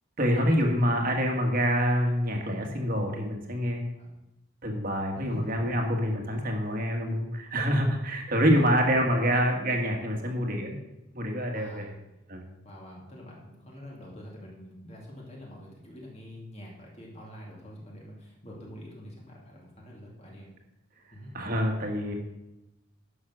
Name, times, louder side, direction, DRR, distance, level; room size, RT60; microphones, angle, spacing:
voice 1, 0.2-3.9 4.6-10.8 11.1-11.9 12.3-12.4 21.3-22.1, equal, 40° right, 2 dB, 1.7 m, -26 dB
voice 2, 11.5-11.9 12.6-20.5 21.1-21.3, equal, 30° left, -3 dB, 2.5 m, -45 dB
11.0 x 6.4 x 6.3 m, 0.94 s
head